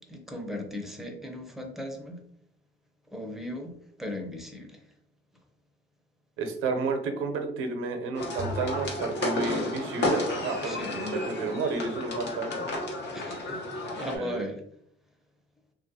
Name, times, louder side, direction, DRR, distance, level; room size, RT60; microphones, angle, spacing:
voice 1, 0.1-2.2 3.1-4.8 10.6-11.1 13.1-13.6 13.9-14.6, left 1 dB, ahead, 2 dB, 0.6 m, -37 dB
voice 2, 6.4-12.7 14.1-14.4, right 3 dB, 90° right, 6 dB, 0.6 m, -31 dB
sound 1, 8.1-14.2, left 2 dB, 60° left, 1.0 m, -32 dB
Bowed string instrument, 8.4-10.8, equal, 50° right, 0.4 m, -42 dB
3.0 x 2.4 x 2.7 m, 0.69 s
cardioid pair, 100°, 20 cm